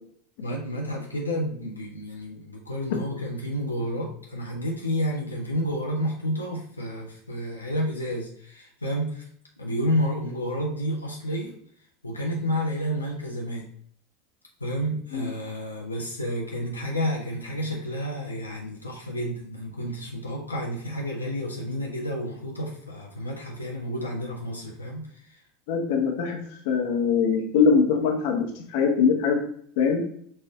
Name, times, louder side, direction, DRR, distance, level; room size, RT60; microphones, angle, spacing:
voice 1, 0.4-9.2 9.6-11.5 12.0-13.7 14.6-25.0, equal, 85° left, -2 dB, 0.7 m, -30 dB
voice 2, 25.7-26.4 26.6-29.4 29.8-30.0, left 5 dB, 55° left, 3 dB, 0.8 m, -22 dB
5.6 x 2.6 x 3.4 m, 0.63 s
figure-of-eight pair, 80°, 0 cm